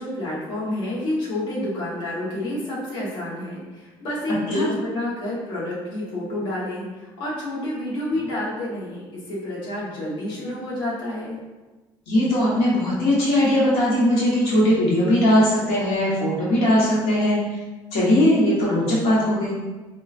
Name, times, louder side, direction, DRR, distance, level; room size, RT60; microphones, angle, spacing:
voice 1, 0.0-9.0 9.3-11.4, left 1 dB, 60° left, -7 dB, 1.0 m, -29 dB
voice 2, 12.1-17.4 17.9-19.5, left 1 dB, 85° left, -6 dB, 1.0 m, -19 dB
4.4 x 2.2 x 2.4 m, 1.2 s
cardioid pair, 170°, 10 cm